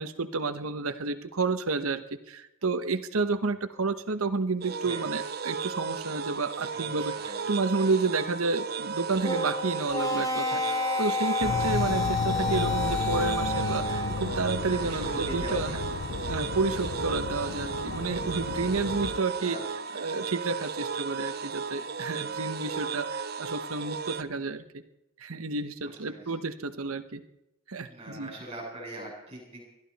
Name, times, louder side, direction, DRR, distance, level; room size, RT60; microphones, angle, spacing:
voice 1, 0.0-7.1 7.5-15.8 16.3-19.6 19.9-24.6 25.2-27.2 27.7-28.3, right 3 dB, 85° right, 10 dB, 1.1 m, -30 dB
sound 1, 4.6-24.2, right 5 dB, 45° right, 0.6 m, -35 dB
voice 2, 6.6-7.4 7.7-7.9 14.6-15.7 16.2-16.3 18.6-18.7 19.4-20.2 22.1-22.5 25.9-26.2 27.9-29.6, right 1 dB, 25° right, -1 dB, 7.1 m, -42 dB
sound 2, 9.2-14.3, left 3 dB, 15° left, 2.2 m, -30 dB
sound 3, 11.4-19.2, left 4 dB, 60° left, 0.6 m, -33 dB
21.0 x 13.5 x 4.2 m, 0.89 s
head